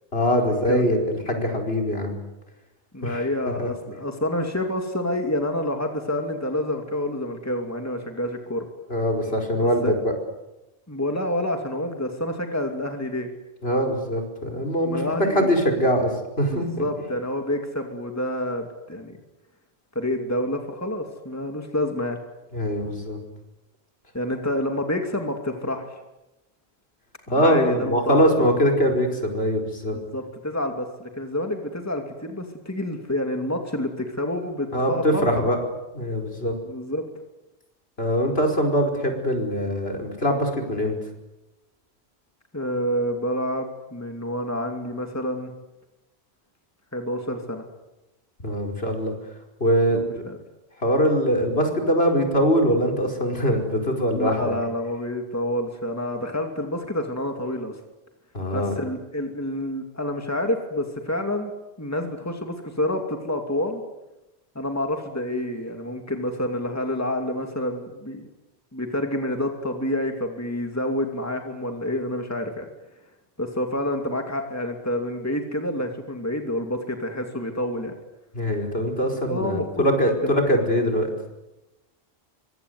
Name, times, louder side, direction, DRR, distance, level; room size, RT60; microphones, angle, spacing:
voice 1, 0.1-2.2 3.0-3.3 3.6-3.7 8.9-10.1 13.6-15.0 15.3-16.1 16.4-16.9 22.5-23.2 27.3-30.0 34.7-35.6 35.9-36.5 38.0-41.0 48.4-49.1 49.6-50.2 50.8-54.6 58.3-58.8 78.3-81.1, equal, 65° left, 3 dB, 5.4 m, -22 dB
voice 2, 2.9-8.7 9.8-9.9 10.9-13.3 14.8-15.5 16.5-19.2 19.9-22.2 24.1-26.0 27.3-28.5 29.9-35.3 36.7-37.1 42.5-45.5 46.9-47.6 49.9-50.4 54.1-57.8 58.5-61.5 61.8-63.8 64.5-68.3 68.7-72.7 73.4-77.9 79.3-79.9 80.2-80.4, left 1 dB, 15° left, 4 dB, 2.7 m, -28 dB
25.0 x 25.0 x 9.6 m, 0.96 s
omnidirectional pair, 1.1 m